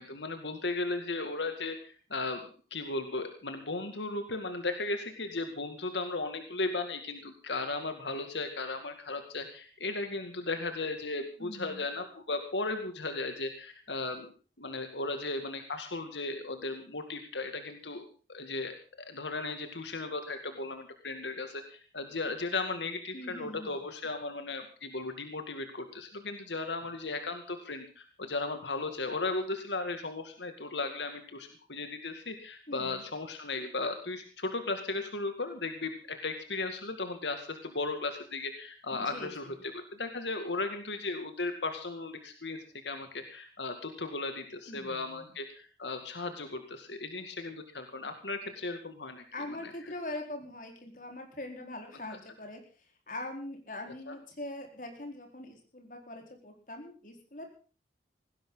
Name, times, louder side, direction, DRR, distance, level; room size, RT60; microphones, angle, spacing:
voice 1, 0.0-14.3 14.6-39.5 39.9-49.2 54.1-54.2, left 3 dB, 90° left, 7 dB, 2.3 m, -36 dB
voice 2, 11.4-11.9 23.1-23.7 32.7-33.0 38.9-39.5 44.7-45.3 49.3-57.5, left 1 dB, 45° left, 3 dB, 4.4 m, -42 dB
19.0 x 16.0 x 3.9 m, 0.37 s
head